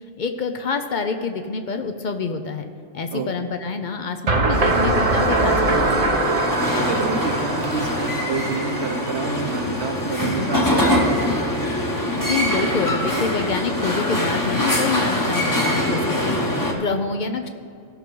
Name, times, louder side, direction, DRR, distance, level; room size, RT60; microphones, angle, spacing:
voice 1, 0.2-2.7 2.9-6.3 12.2-17.5, left 4 dB, 55° left, 7 dB, 0.6 m, -27 dB
sound 1, 4.3-9.2, right 2 dB, 35° right, 0.7 m, -22 dB
sound 2, 4.5-16.7, left 1 dB, 15° left, 1.0 m, -24 dB
voice 2, 6.8-11.2, right 4 dB, 60° right, 5 dB, 1.2 m, -28 dB
16.0 x 6.3 x 3.8 m, 2.4 s
omnidirectional pair, 1.3 m